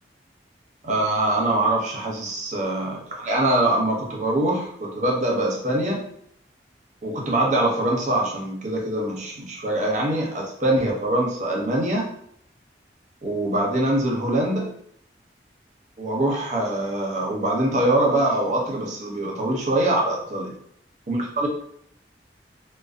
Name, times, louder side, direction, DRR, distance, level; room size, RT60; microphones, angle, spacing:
voice 1, 0.8-6.0 7.0-12.0 13.2-14.7 16.0-20.5 21.1-21.5, right 1 dB, 45° right, -2 dB, 0.6 m, -23 dB
2.5 x 2.1 x 2.4 m, 0.68 s
head